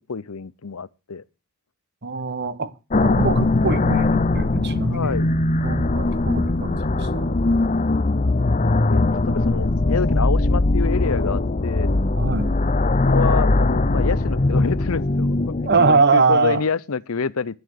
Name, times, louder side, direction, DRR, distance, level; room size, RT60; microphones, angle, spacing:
voice 1, 0.1-1.2 4.9-5.3 8.9-11.9 12.8-17.6, left 5 dB, 70° left, 0.7 m, -27 dB
voice 2, 2.0-5.3 5.6-7.3 12.2-12.5 15.6-16.6, right 4 dB, 50° right, 1.2 m, -22 dB
sound 1, 2.9-16.0, left 2 dB, 35° left, 0.7 m, -20 dB
11.5 x 11.0 x 6.6 m
head